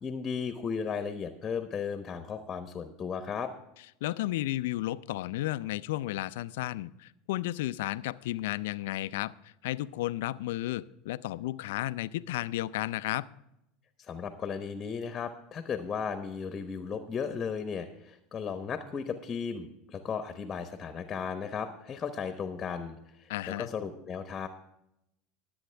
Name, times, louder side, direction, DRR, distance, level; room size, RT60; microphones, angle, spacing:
voice 1, 0.0-3.5 14.0-24.5, left 6 dB, 30° left, 8 dB, 1.0 m, -35 dB
voice 2, 4.0-13.3 23.3-23.7, left 16 dB, 75° left, 15 dB, 0.4 m, -33 dB
20.0 x 8.0 x 3.4 m, 0.83 s
hypercardioid pair, 85°, 0 cm